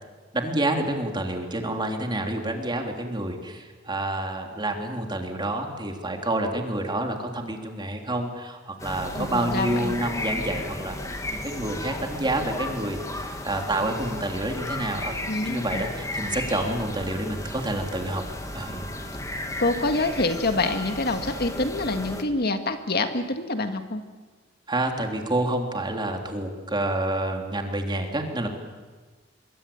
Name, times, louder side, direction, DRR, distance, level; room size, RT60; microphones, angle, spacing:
voice 1, 0.3-15.2 15.4-18.2 18.5-18.9 24.7-28.5, right 1 dB, 25° right, 3 dB, 3.4 m, -28 dB
sound 1, 8.8-22.2, left 1 dB, 15° left, 2.5 m, -34 dB
voice 2, 9.2-10.0 15.3-15.8 19.6-24.0, left 2 dB, 55° left, 7 dB, 1.9 m, -26 dB
25.5 x 23.5 x 8.8 m, 1.4 s
head